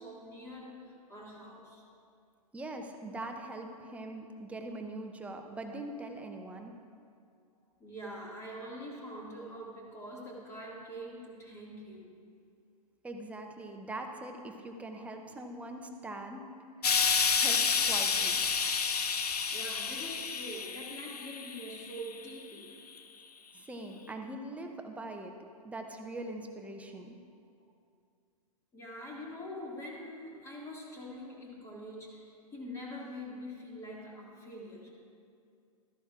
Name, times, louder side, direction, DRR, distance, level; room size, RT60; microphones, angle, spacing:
voice 1, 0.0-1.8 7.8-12.1 14.9-15.0 18.9-22.7 26.9-27.0 28.7-34.9, equal, 15° left, -3 dB, 1.9 m, -44 dB
voice 2, 2.5-6.7 13.0-16.4 17.4-17.6 17.9-18.4 23.5-27.2, right 2 dB, 5° right, 3 dB, 0.6 m, -42 dB
Explosion, 16.8-22.1 23.0-23.1, left 6 dB, 85° left, 0.7 m, -30 dB
13.5 x 10.5 x 2.4 m, 2.4 s
hypercardioid pair, 125°, 20 cm